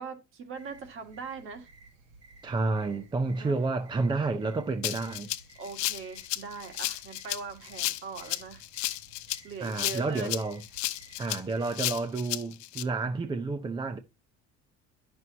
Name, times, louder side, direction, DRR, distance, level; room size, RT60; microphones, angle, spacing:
voice 1, 0.0-1.7 3.3-3.6 5.6-8.7 9.4-10.4, right 5 dB, 45° right, 1.7 m, -41 dB
sound 1, 0.5-11.7, right 3 dB, 60° right, 1.9 m, -56 dB
voice 2, 2.4-5.3 9.6-10.6 11.2-14.0, right 3 dB, 15° right, 0.5 m, -30 dB
Rattle (instrument), 4.8-12.8, left 16 dB, 75° left, 0.8 m, -33 dB
10.5 x 6.2 x 2.7 m
cardioid pair, 165°, 29 cm